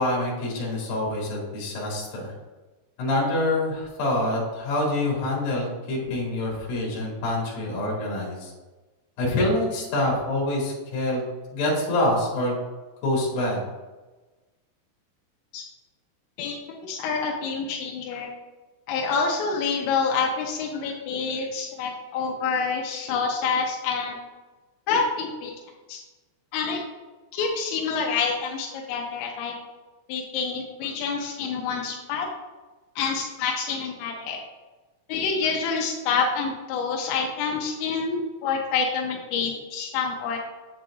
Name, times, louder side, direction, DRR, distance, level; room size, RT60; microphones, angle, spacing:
voice 1, 0.0-2.3 3.0-8.5 9.2-11.2 11.5-12.5 13.0-13.6, left 1 dB, 55° left, -4 dB, 3.3 m, -26 dB
voice 2, 16.4-18.3 18.9-24.2 24.9-25.5 25.9-26.0 26.5-26.8 27.3-29.5 30.1-32.3 33.0-34.4 35.1-40.4, left 5 dB, 85° left, 0 dB, 2.7 m, -27 dB
7.7 x 7.5 x 2.4 m, 1.2 s
omnidirectional pair, 6.0 m